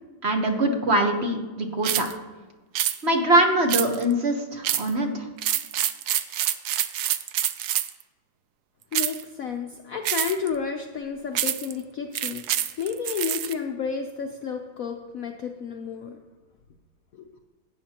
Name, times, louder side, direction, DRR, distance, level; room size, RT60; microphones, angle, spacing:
voice 1, 0.2-2.1 3.0-5.3, right 1 dB, 40° right, 3 dB, 1.0 m, -23 dB
sound 1, 1.8-2.1 2.7-3.0 3.7-4.1 4.6-4.9 5.4-8.0 8.9-9.2 10.0-10.5 11.3-11.7 12.1-13.5, right 11 dB, 85° right, 0.8 m, -26 dB
voice 2, 8.9-16.2 17.1-17.3, left 6 dB, 85° left, 4 dB, 0.7 m, -31 dB
16.5 x 8.7 x 2.9 m, 1.3 s
omnidirectional pair, 2.3 m